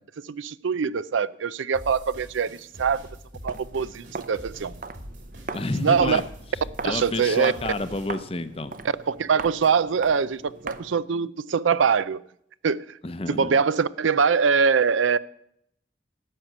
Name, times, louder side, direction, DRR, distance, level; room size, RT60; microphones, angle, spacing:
voice 1, 0.2-3.0 3.4-4.8 5.8-6.2 6.8-7.5 9.0-12.2 12.6-12.9 13.3-15.2, right 6 dB, 85° right, 0.5 m, -23 dB
sound 1, 1.7-8.1, equal, 65° right, 3.3 m, -44 dB
Walk footsteps, 3.4-11.1, right 4 dB, 45° right, 0.7 m, -40 dB
voice 2, 5.5-6.2 6.8-8.7 13.0-13.6, left 2 dB, 30° left, 0.7 m, -29 dB
12.0 x 7.4 x 7.9 m
head